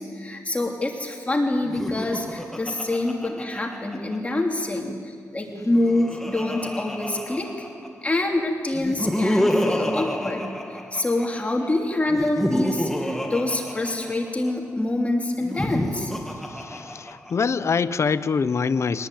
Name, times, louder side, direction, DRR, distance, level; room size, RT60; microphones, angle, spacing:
voice 1, 0.0-7.7 8.0-10.4 10.9-16.1, left 2 dB, 20° left, 1 dB, 3.0 m, -26 dB
Laughter, 1.6-4.4 5.5-8.1 8.7-11.5 12.1-14.5 15.4-17.5, left 1 dB, 5° left, 2.4 m, -29 dB
voice 2, 16.5-19.1, left 5 dB, 50° left, 13 dB, 0.9 m, -24 dB
24.5 x 19.0 x 9.2 m, 2.1 s
cardioid pair, 85°, 6 cm